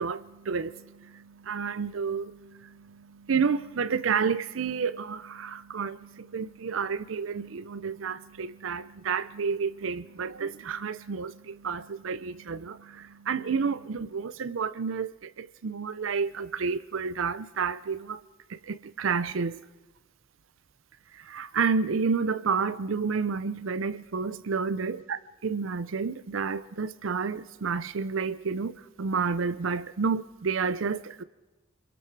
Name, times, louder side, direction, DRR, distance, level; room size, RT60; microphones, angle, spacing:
voice 1, 0.0-18.2 18.5-19.6 21.1-31.2, right 5 dB, 70° right, 0.5 m, -30 dB
26.0 x 22.0 x 4.7 m
head